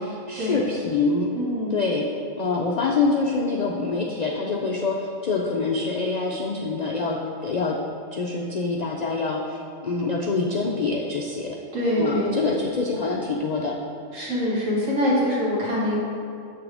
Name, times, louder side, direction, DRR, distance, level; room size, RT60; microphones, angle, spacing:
voice 1, 0.0-1.3 1.7-2.1 2.4-7.8 8.1-11.6 12.0-13.7, left 3 dB, 80° left, 0 dB, 0.3 m, -25 dB
voice 2, 1.3-1.8 11.7-12.3 14.1-16.0, equal, 70° right, -8 dB, 2.4 m, -24 dB
7.4 x 6.0 x 3.4 m, 2.5 s
omnidirectional pair, 1.4 m